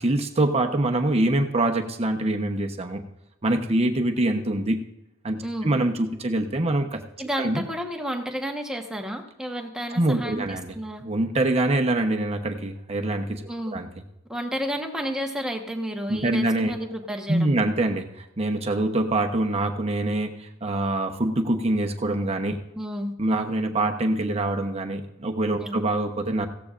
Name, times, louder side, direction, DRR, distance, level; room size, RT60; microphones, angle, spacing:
voice 1, 0.0-3.0 3.4-4.8 5.2-7.0 7.4-7.6 9.9-10.7 11.0-13.9 16.1-16.7 17.3-22.6 23.2-26.5, right 2 dB, 30° right, 4 dB, 0.9 m, -24 dB
voice 2, 5.4-5.7 7.2-11.0 13.5-13.8 14.3-17.7 22.7-23.1 25.6-25.8, equal, 5° right, 2 dB, 1.2 m, -31 dB
16.5 x 14.0 x 2.5 m, 0.92 s
head